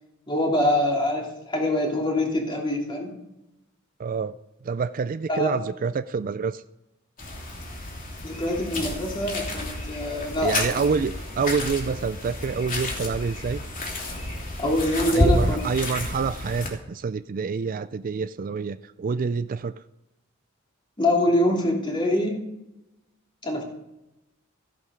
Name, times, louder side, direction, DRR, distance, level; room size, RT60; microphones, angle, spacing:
voice 1, 0.3-3.1 5.3-5.5 8.2-10.9 14.6-15.6 21.0-22.5 23.4-23.6, left 1 dB, 25° left, -1 dB, 3.1 m, -24 dB
voice 2, 4.0-4.4 4.6-6.6 10.4-13.6 15.1-19.7, right 5 dB, 40° right, 13 dB, 0.4 m, -27 dB
sound 1, 7.2-16.7, left 1 dB, 40° left, 3.1 m, -30 dB
14.5 x 11.0 x 5.0 m, 0.94 s
head